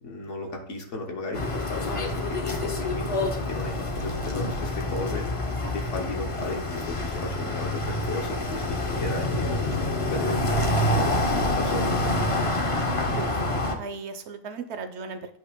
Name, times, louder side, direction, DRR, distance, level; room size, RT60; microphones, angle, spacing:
voice 1, 0.0-5.2 5.7-11.1 11.6-12.5, left 2 dB, 65° left, 1 dB, 1.5 m, -35 dB
sound 1, 1.3-13.8, left 1 dB, 30° left, 0.7 m, -27 dB
voice 2, 5.5-5.8 13.1-15.4, right 4 dB, 60° right, 9 dB, 0.9 m, -38 dB
8.3 x 2.9 x 5.0 m, 0.68 s
omnidirectional pair, 1.4 m